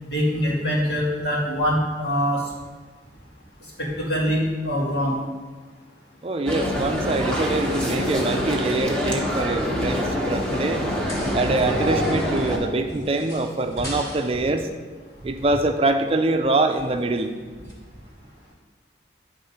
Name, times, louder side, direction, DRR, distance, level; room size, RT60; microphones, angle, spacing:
voice 1, 0.1-2.4 3.8-5.2 13.8-13.9, equal, 75° left, -5 dB, 2.2 m, -23 dB
voice 2, 6.2-10.8 11.3-14.7 15.2-17.3, right 2 dB, 30° right, 6 dB, 0.4 m, -24 dB
sound 1, 6.4-12.6, equal, 5° left, 1.0 m, -25 dB
sound 2, 11.1-11.8 12.0-14.5 16.7-17.2 17.6-17.7, equal, 20° left, 1.7 m, -41 dB
9.5 x 3.7 x 5.4 m, 1.4 s
head